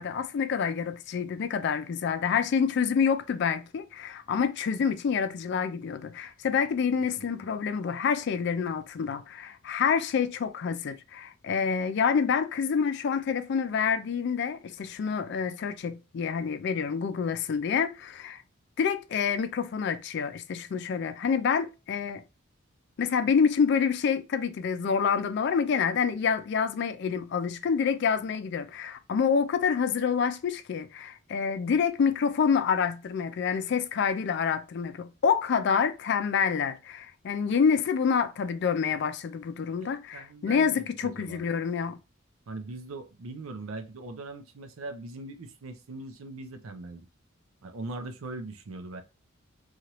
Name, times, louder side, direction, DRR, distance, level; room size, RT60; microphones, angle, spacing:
voice 1, 0.0-18.4 18.8-22.2 23.0-42.0, left 6 dB, 55° left, 0.3 m, -27 dB
voice 2, 39.6-41.5 42.5-47.1 47.6-49.0, right 2 dB, 85° right, 0.5 m, -41 dB
2.8 x 2.4 x 2.9 m
head